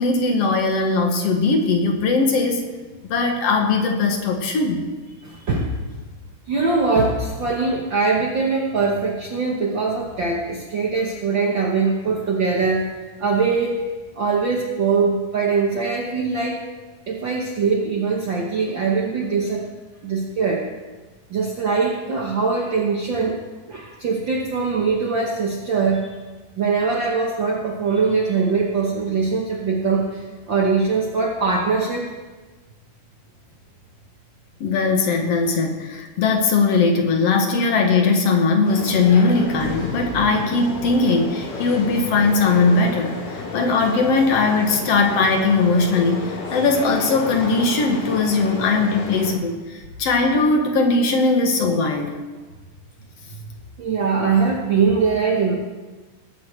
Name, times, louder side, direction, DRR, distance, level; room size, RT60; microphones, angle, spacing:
voice 1, 0.0-2.6 3.1-4.8 34.6-52.1, left 3 dB, 60° left, 4 dB, 2.0 m, -19 dB
voice 2, 5.2-5.7 6.5-12.9 13.2-13.9 14.2-16.6 17.1-19.7 20.0-20.7 21.3-23.4 23.7-26.1 26.6-32.0 53.8-55.5, right 4 dB, 65° right, -1 dB, 1.1 m, -22 dB
sound 1, 38.6-49.3, left 3 dB, 80° left, 5.0 m, -32 dB
19.0 x 8.3 x 4.3 m, 1.3 s
omnidirectional pair, 3.7 m